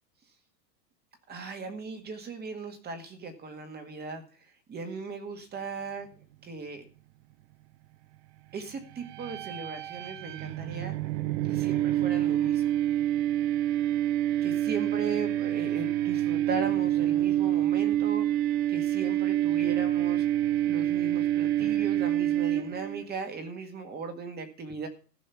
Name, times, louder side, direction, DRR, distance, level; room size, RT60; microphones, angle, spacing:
voice 1, 1.3-6.1 6.4-6.8 8.5-10.9 11.4-12.8 14.4-20.2 20.6-24.9, right 4 dB, 20° right, 6 dB, 2.0 m, -38 dB
sound 1, 9.0-23.0, right 13 dB, 40° right, 0.8 m, -27 dB
14.5 x 5.5 x 7.0 m, 0.38 s
hypercardioid pair, 140°, 49 cm